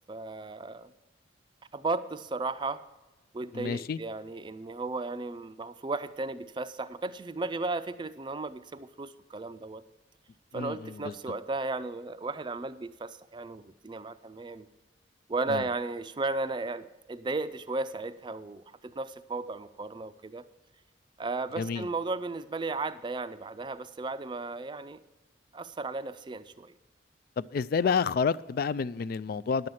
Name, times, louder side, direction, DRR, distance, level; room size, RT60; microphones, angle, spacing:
voice 1, 0.1-0.9 1.7-2.8 3.3-9.8 10.5-14.7 15.3-20.4 21.2-25.0 25.5-26.7, right 3 dB, 25° right, 0.4 m, -35 dB
voice 2, 3.5-4.0 10.5-11.1 15.5-15.6 21.6-21.9 27.4-29.7, left 5 dB, 55° left, 0.3 m, -29 dB
11.0 x 7.9 x 5.7 m
head